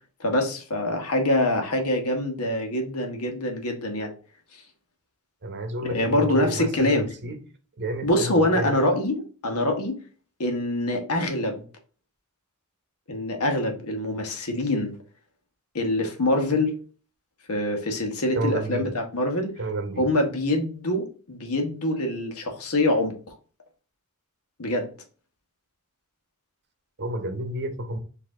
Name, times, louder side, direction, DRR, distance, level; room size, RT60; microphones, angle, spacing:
voice 1, 0.2-4.1 5.9-7.1 8.0-10.0 10.4-11.6 13.1-15.0 15.7-16.8 17.5-19.5 20.0-23.3 24.6-24.9, left 1 dB, 75° left, 1.2 m, -25 dB
voice 2, 5.4-7.4 7.8-8.8 18.3-18.9 19.6-20.1 27.0-28.0, right 1 dB, 50° right, 0.8 m, -30 dB
4.7 x 2.7 x 3.6 m
head